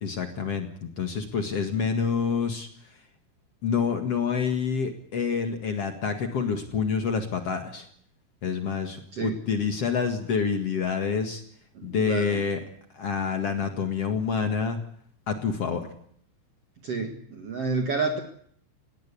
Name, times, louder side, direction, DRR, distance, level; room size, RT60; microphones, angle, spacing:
voice 1, 0.0-2.7 3.6-7.9 8.4-11.4 11.8-12.6 12.9-14.8 15.3-15.9, left 6 dB, 65° left, 6 dB, 1.5 m, -27 dB
voice 2, 11.7-12.4 16.8-18.2, right 4 dB, 75° right, 5 dB, 1.4 m, -29 dB
20.0 x 18.0 x 8.5 m, 0.64 s
omnidirectional pair, 5.9 m